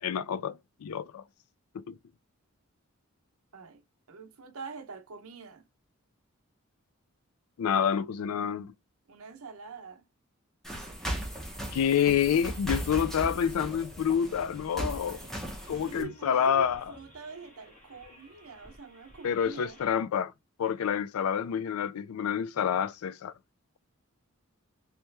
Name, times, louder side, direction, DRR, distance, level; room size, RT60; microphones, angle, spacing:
voice 1, 0.0-1.2 1.7-2.0 7.6-8.7 11.7-15.2 15.7-16.9 19.2-20.3 20.6-23.3, left 8 dB, 90° left, 0.4 m, -28 dB
voice 2, 4.1-5.7 9.1-10.0 15.8-19.8, right 4 dB, 90° right, 0.7 m, -45 dB
sound 1, 10.6-16.0, right 1 dB, ahead, 0.8 m, -37 dB
sound 2, 10.7-19.9, left 1 dB, 35° left, 1.7 m, -55 dB
3.3 x 3.0 x 3.2 m
head